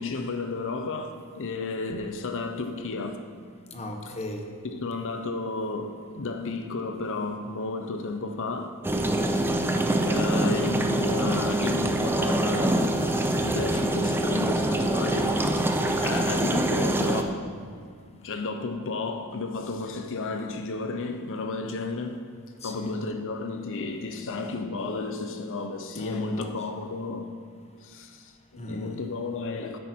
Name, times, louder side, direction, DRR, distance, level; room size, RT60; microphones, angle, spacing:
voice 1, 0.0-3.3 4.7-8.8 9.3-9.4 10.0-17.4 18.2-22.2 22.6-27.4 27.8-29.8, left 3 dB, 60° left, 0.7 m, -33 dB
voice 2, 3.7-4.5 8.9-9.4 22.6-23.0 25.9-26.9 28.6-29.0, equal, 30° left, 1.1 m, -37 dB
sound 1, 8.8-17.2, right 1 dB, 10° right, 0.5 m, -25 dB
10.0 x 8.2 x 4.4 m
head